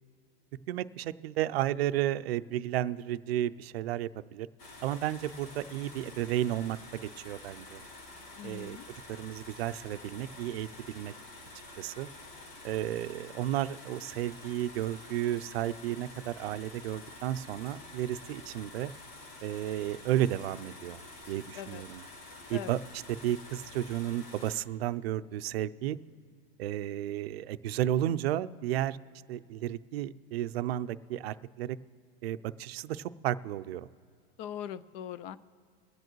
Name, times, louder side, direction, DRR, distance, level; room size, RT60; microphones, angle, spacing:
voice 1, 0.7-4.5 4.8-7.8 8.4-8.8 9.1-11.1 11.8-12.1 12.6-18.9 19.4-21.0 21.3-22.1 22.5-26.0 26.6-29.0 29.3-31.8 32.2-33.9, right 12 dB, 85° right, 14 dB, 0.5 m, -33 dB
sound 1, 4.6-24.6, left 2 dB, 70° left, 2.7 m, -49 dB
voice 2, 8.4-8.9 21.5-21.8 22.5-22.8 34.4-35.4, left 10 dB, 45° left, 16 dB, 0.5 m, -41 dB
23.5 x 7.9 x 3.1 m, 2.2 s
supercardioid pair, 130°, 30 cm